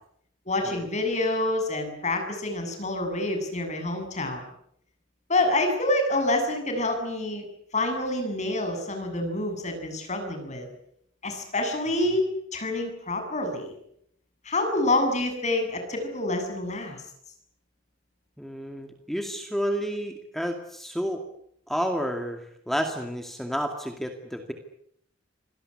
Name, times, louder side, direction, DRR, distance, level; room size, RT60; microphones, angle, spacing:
voice 1, 0.5-4.4 5.3-7.4 7.7-10.7 11.2-12.2 12.5-13.7 14.4-17.0, left 2 dB, 35° left, 5 dB, 7.6 m, -27 dB
voice 2, 18.4-21.2 21.7-24.5, equal, ahead, 5 dB, 2.3 m, -30 dB
26.5 x 18.5 x 9.9 m, 0.72 s
head